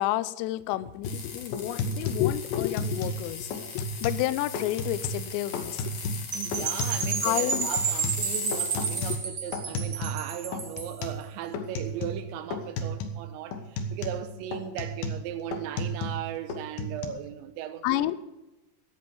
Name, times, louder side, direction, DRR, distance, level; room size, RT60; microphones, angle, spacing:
voice 1, 0.0-5.8 7.2-7.7 17.8-18.1, left 15 dB, 80° left, 2.8 m, -29 dB
sound 1, 1.0-1.2 1.5-3.2 3.5-4.3 4.5-5.2 5.5-7.3 7.5-10.3 10.5-11.2 11.5-12.3 12.5-13.2 13.5-16.2 16.5-17.1, left 1 dB, 65° left, 2.8 m, -33 dB
sound 2, 1.0-9.2, left 6 dB, 50° left, 2.7 m, -39 dB
Percussion / Wind chime, 6.3-11.0, right 6 dB, 70° right, 1.2 m, -31 dB
voice 2, 6.3-18.1, right 10 dB, 90° right, 3.2 m, -37 dB
16.0 x 8.6 x 5.7 m
omnidirectional pair, 5.1 m